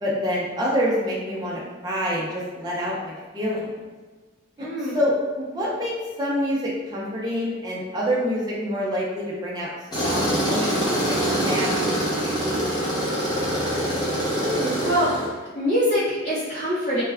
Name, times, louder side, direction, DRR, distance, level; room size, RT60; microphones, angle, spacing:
voice 1, 0.0-3.7 4.6-9.7 10.0-11.1 11.4-12.6, equal, 20° right, -6 dB, 0.5 m, -27 dB
voice 2, 4.6-5.0 14.3-15.1 15.5-17.0, equal, 55° left, -15 dB, 1.5 m, -24 dB
Tools, 9.9-15.3, right 1 dB, 20° left, 0.8 m, -24 dB
3.2 x 2.3 x 3.4 m, 1.3 s
head